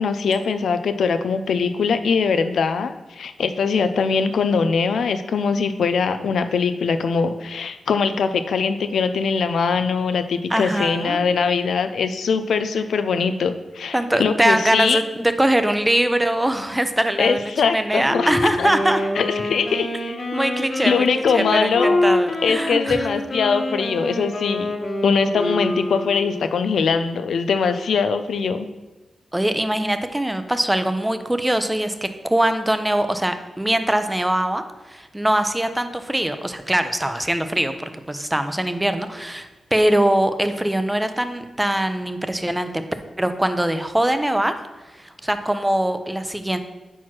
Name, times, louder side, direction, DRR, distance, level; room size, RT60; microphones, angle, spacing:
voice 1, 0.0-15.0 17.2-18.3 18.6-18.7 19.2-20.2 20.8-22.0 22.4-24.7 25.0-28.7, left 5 dB, 80° left, 9 dB, 0.4 m, -22 dB
voice 2, 10.5-11.2 13.9-19.0 20.3-23.1 29.3-42.8 43.2-44.5 44.9-46.6, right 1 dB, 10° right, 9 dB, 0.6 m, -22 dB
Wind instrument woodwind instrument, 18.0-26.4, left 1 dB, 60° left, 1.4 m, -25 dB
4.6 x 4.4 x 5.9 m, 1.1 s
cardioid pair, 60°, 0 cm